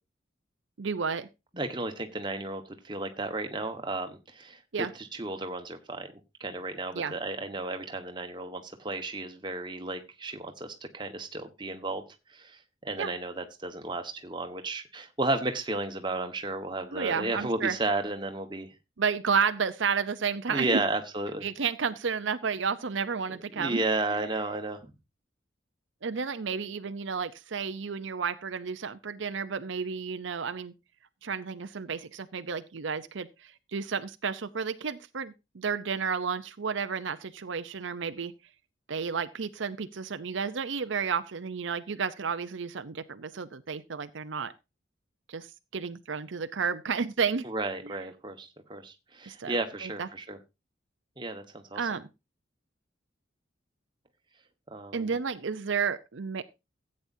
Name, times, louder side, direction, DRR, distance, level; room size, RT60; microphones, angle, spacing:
voice 1, 0.8-1.3 4.7-4.9 6.9-7.1 13.0-13.1 16.9-17.8 19.0-20.8 21.4-23.8 24.1-24.2 26.0-30.7 31.2-38.3 38.9-44.5 45.3-47.5 47.8-47.9 49.3-49.5 49.8-50.1 51.7-52.1 54.9-56.4, right 6 dB, 70° right, 11 dB, 0.6 m, -31 dB
voice 2, 1.5-6.1 6.4-12.0 12.3-18.7 20.5-21.5 23.3-24.9 47.4-50.4 51.2-51.8 54.7-55.2, right 2 dB, 25° right, 5 dB, 1.4 m, -33 dB
15.0 x 8.8 x 2.7 m, 0.26 s
head